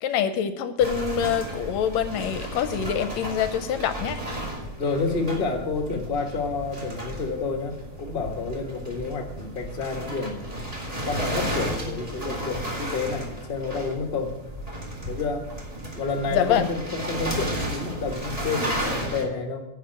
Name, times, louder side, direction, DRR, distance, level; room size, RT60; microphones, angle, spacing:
voice 1, 0.0-4.2 16.3-16.7, left 8 dB, 75° left, 10 dB, 1.8 m, -25 dB
sound 1, 0.8-19.2, right 1 dB, 15° right, 1.6 m, -33 dB
voice 2, 4.8-10.5 11.1-14.4 15.0-15.5 16.0-19.6, left 4 dB, 35° left, 3 dB, 0.9 m, -29 dB
10.5 x 5.8 x 8.8 m, 0.91 s
omnidirectional pair, 3.4 m